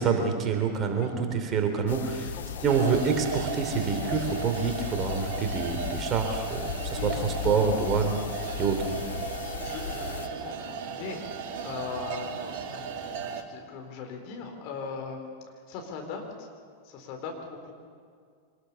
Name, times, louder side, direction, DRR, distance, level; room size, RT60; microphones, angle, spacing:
voice 1, 0.0-2.4 2.6-8.9, right 5 dB, 25° right, 5 dB, 3.0 m, -27 dB
voice 2, 1.0-1.4 2.2-2.7 6.8-7.8 9.5-11.2 11.6-15.3 15.7-16.5 16.8-17.7, left 5 dB, 45° left, 3 dB, 4.2 m, -40 dB
sound 1, 1.9-10.3, left 9 dB, 60° left, 1.0 m, -36 dB
sound 2, 2.7-13.4, right 6 dB, 50° right, 2.0 m, -36 dB
25.5 x 20.0 x 6.9 m, 2.1 s
figure-of-eight pair, 90°, 0 cm